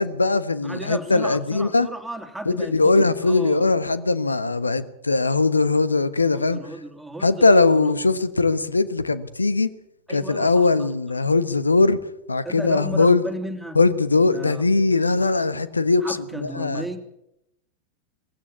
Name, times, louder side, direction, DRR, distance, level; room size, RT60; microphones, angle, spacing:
voice 1, 0.0-1.9 2.4-6.6 7.2-9.7 10.1-12.0 12.3-13.2 13.7-16.8, left 3 dB, 85° left, 15 dB, 1.2 m, -20 dB
voice 2, 0.6-3.7 6.3-7.9 10.1-10.9 12.4-13.8 14.3-14.9 16.0-17.0, right 1 dB, ahead, 4 dB, 2.9 m, -35 dB
20.0 x 16.0 x 8.4 m, 0.82 s
figure-of-eight pair, 90°, 0 cm